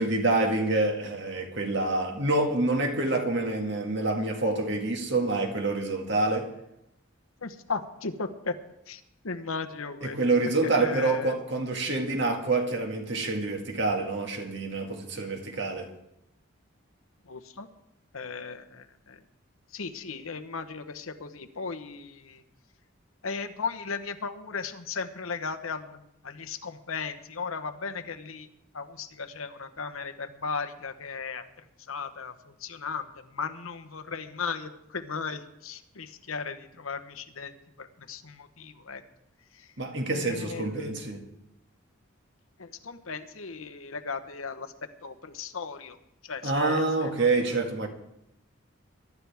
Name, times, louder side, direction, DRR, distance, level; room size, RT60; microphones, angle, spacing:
voice 1, 0.0-6.5 10.0-15.9 39.8-41.2 46.4-47.9, right 2 dB, 55° right, 2.0 m, -27 dB
voice 2, 7.4-8.5 8.9-10.2 10.6-11.4 17.3-17.7 18.1-19.2 19.7-22.4 23.2-26.0 26.2-28.5 28.7-31.4 31.9-32.3 32.6-33.1 33.3-39.0 40.1-40.7 42.6-44.7 45.0-46.0 46.3-47.1, left 5 dB, 80° left, 1.1 m, -36 dB
22.5 x 12.0 x 3.5 m
head